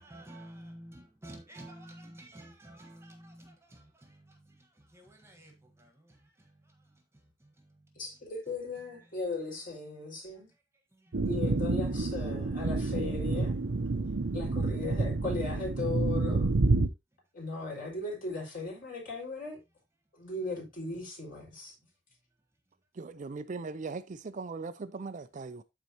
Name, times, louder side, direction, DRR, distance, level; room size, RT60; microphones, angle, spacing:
voice 1, 0.0-7.0 7.4-7.9 10.9-11.2, right 1 dB, 15° right, 1.5 m, -51 dB
voice 2, 7.9-10.5 11.3-13.5 14.3-16.5 17.3-19.6 20.1-21.7, left 3 dB, 45° left, 4.9 m, -37 dB
sound 1, 11.1-16.9, right 3 dB, 70° right, 0.7 m, -29 dB
voice 3, 23.0-25.6, right 4 dB, 40° right, 0.4 m, -39 dB
13.5 x 4.5 x 2.9 m
head